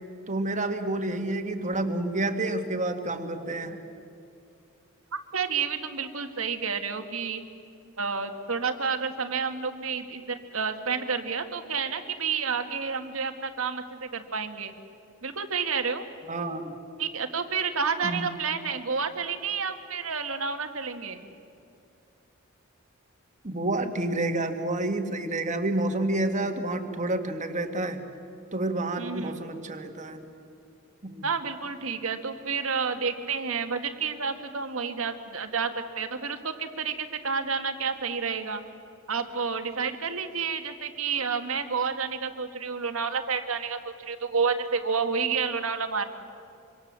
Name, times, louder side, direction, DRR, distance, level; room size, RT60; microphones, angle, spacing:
voice 1, 0.3-3.8 16.3-16.7 18.0-18.2 23.4-28.0 28.5-30.2 31.0-31.3, right 2 dB, 35° right, 6 dB, 2.0 m, -29 dB
voice 2, 5.3-7.4 8.0-14.7 15.2-16.0 17.0-21.3 29.0-29.3 31.2-38.6 39.1-46.1, right 5 dB, 80° right, 7 dB, 1.9 m, -30 dB
26.0 x 25.0 x 7.6 m, 2.6 s
head